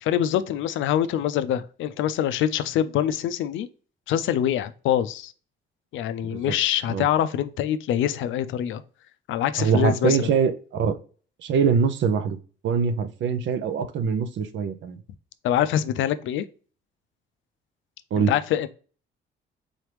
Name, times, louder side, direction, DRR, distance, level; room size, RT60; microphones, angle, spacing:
voice 1, 0.0-3.7 4.1-5.3 5.9-8.8 9.3-10.3 15.4-16.4 18.3-18.7, left 11 dB, 75° left, 0.4 m, -24 dB
voice 2, 9.6-10.5 10.8-11.0 11.4-12.4 12.6-15.0 18.1-18.3, right 6 dB, 70° right, 0.6 m, -23 dB
4.0 x 3.1 x 3.3 m
cardioid pair, 90°, 20 cm